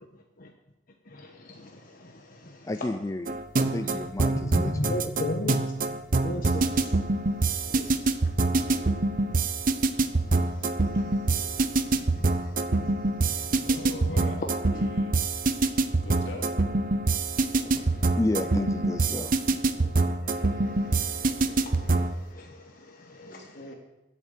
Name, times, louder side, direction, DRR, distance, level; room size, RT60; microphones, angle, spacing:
voice 1, 1.1-2.7 3.9-4.0 4.5-6.0 6.2-6.9 7.7-7.9 10.4-11.0 11.3-11.6 12.1-12.5 12.8-12.9 13.2-13.3 17.7-18.0 19.8-23.3, left 1 dB, 45° left, 1 dB, 1.3 m, -37 dB
voice 2, 2.6-5.1 17.6-17.7 18.1-19.3, left 2 dB, 15° left, 9 dB, 0.3 m, -32 dB
sound 1, 3.3-22.2, right 3 dB, 45° right, 0.7 m, -25 dB
voice 3, 13.7-14.4 14.7-15.1 15.9-16.5 23.2-23.7, left 1 dB, 65° left, 1 dB, 2.8 m, -41 dB
11.5 x 8.3 x 7.4 m, 0.99 s
head